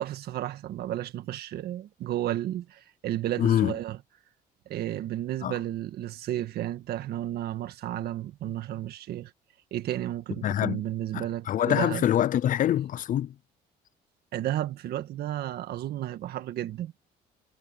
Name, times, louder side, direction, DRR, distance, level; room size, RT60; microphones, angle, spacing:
voice 1, 0.0-4.0 4.6-9.3 9.7-12.0 14.3-16.9, right 13 dB, 70° right, 1.7 m, -32 dB
voice 2, 3.4-3.7 5.4-5.6 10.4-10.8 11.1-13.4, left 11 dB, 50° left, 0.6 m, -25 dB
cardioid pair, 110°, 17 cm